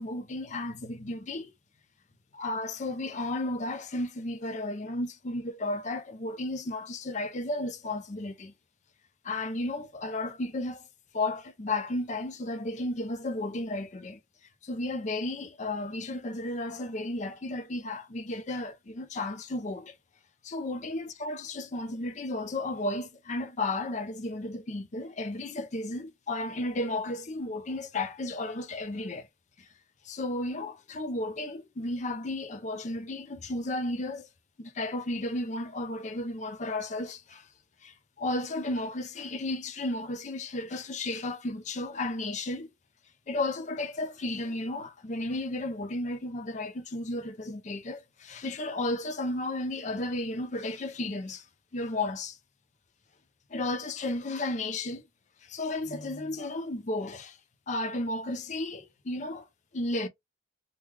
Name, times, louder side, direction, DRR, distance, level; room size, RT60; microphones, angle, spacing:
voice 1, 0.0-1.5 2.3-8.5 9.2-10.8 11.1-14.2 14.6-20.0 20.4-29.3 30.0-34.3 34.6-37.5 37.8-42.7 43.3-51.4 51.7-52.4 53.5-55.0 55.5-57.4 57.7-59.5 59.7-60.1, left 2 dB, 40° left, 0.5 m, -33 dB
3.1 x 2.3 x 3.3 m
head